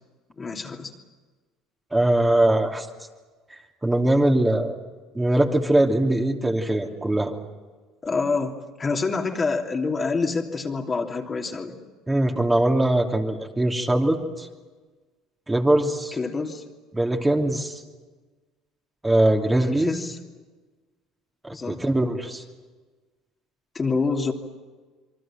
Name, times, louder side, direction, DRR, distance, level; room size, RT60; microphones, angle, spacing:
voice 1, 0.4-0.9 8.0-11.7 16.1-16.6 19.5-20.2 21.5-21.8 23.7-24.3, left 4 dB, 30° left, 1 dB, 3.0 m, -27 dB
voice 2, 1.9-2.9 3.8-4.7 5.1-7.3 12.1-14.5 15.5-16.2 16.9-17.8 19.0-19.9 21.4-22.4, right 1 dB, 15° right, 1 dB, 2.9 m, -21 dB
27.0 x 23.5 x 7.6 m, 1.3 s
hypercardioid pair, 70°, 0 cm